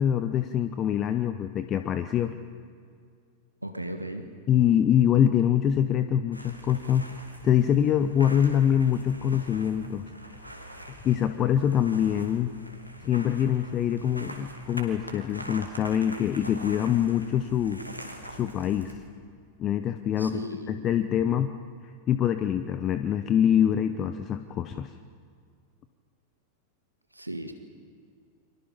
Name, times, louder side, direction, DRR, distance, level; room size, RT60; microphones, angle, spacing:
voice 1, 0.0-2.3 4.5-7.1 7.4-10.0 11.0-12.5 13.0-17.8 18.3-18.9 19.6-21.5 22.1-24.9, left 9 dB, 30° left, 10 dB, 1.0 m, -24 dB
voice 2, 3.6-4.3 20.1-20.8 27.1-27.5, right 1 dB, 85° right, 7 dB, 1.8 m, -36 dB
sound 1, 6.3-18.9, equal, 90° left, 2.7 m, -44 dB
29.5 x 25.0 x 5.4 m, 2.2 s
figure-of-eight pair, 90°, 0 cm